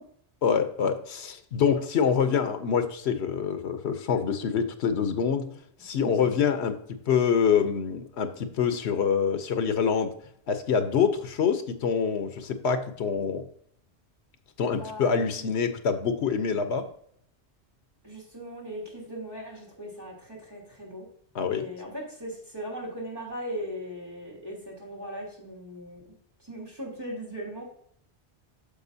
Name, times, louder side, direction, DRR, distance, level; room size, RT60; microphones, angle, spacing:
voice 1, 0.4-5.5 5.8-6.8 7.1-10.1 10.5-13.5 14.6-16.9 21.3-21.7, left 6 dB, 80° left, 9 dB, 1.1 m, -26 dB
voice 2, 14.7-15.6 18.0-21.1 21.5-26.0 26.5-27.6, equal, 20° right, -4 dB, 3.1 m, -38 dB
9.9 x 6.8 x 2.7 m, 0.65 s
omnidirectional pair, 1.1 m